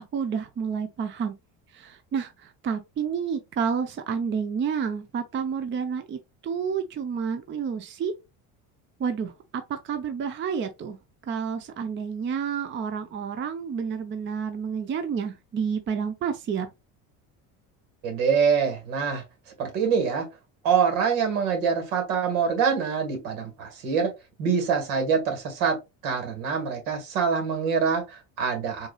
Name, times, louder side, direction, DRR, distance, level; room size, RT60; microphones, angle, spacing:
voice 1, 0.0-1.3 1.7-8.1 9.0-11.0 11.3-16.7, right 6 dB, 30° right, 0.6 m, -30 dB
voice 2, 18.0-19.2 19.6-20.3 20.6-24.1 24.4-25.8 26.0-28.9, right 6 dB, 80° right, 1.9 m, -25 dB
4.6 x 2.7 x 2.3 m
supercardioid pair, 95°, 40 cm